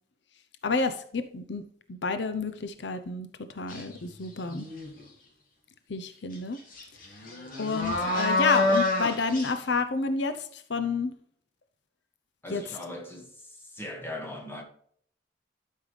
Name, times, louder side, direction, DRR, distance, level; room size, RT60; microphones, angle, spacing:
voice 1, 0.6-3.3 3.5-4.7 5.9-6.6 7.6-11.1 12.5-12.8, left 4 dB, 70° left, 0.7 m, -30 dB
sound 1, 3.7-3.9 4.4-5.0 6.3-6.4 6.7-9.5, left 2 dB, 45° left, 2.4 m, -27 dB
voice 2, 12.4-13.3 13.7-14.6, left 1 dB, 10° left, 1.7 m, -39 dB
12.0 x 5.5 x 3.3 m
head